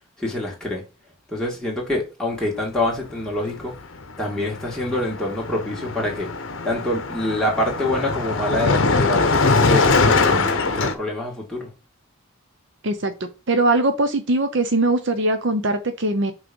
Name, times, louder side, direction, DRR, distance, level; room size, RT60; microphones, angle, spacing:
voice 1, 0.2-0.8 1.3-3.8 4.2-6.3 6.6-9.2 9.5-11.7, left 1 dB, 5° left, 2.3 m, -26 dB
Car passing by, 3.5-3.7 3.9-10.9, left 3 dB, 60° left, 0.9 m, -21 dB
voice 2, 12.8-16.3, right 2 dB, 55° right, 0.8 m, -21 dB
6.1 x 3.2 x 5.4 m
head